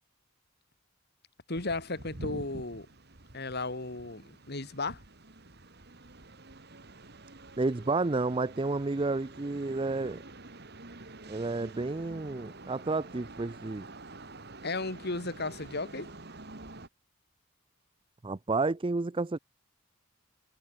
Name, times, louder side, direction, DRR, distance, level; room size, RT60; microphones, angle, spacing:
voice 1, 1.5-2.9 3.3-5.0 14.6-16.1, left 2 dB, 50° left, 2.6 m, -35 dB
sound 1, 1.5-16.9, right 2 dB, 50° right, 2.4 m, -48 dB
voice 2, 7.6-10.2 11.3-13.9 18.2-19.4, right 3 dB, 25° right, 0.5 m, -31 dB
head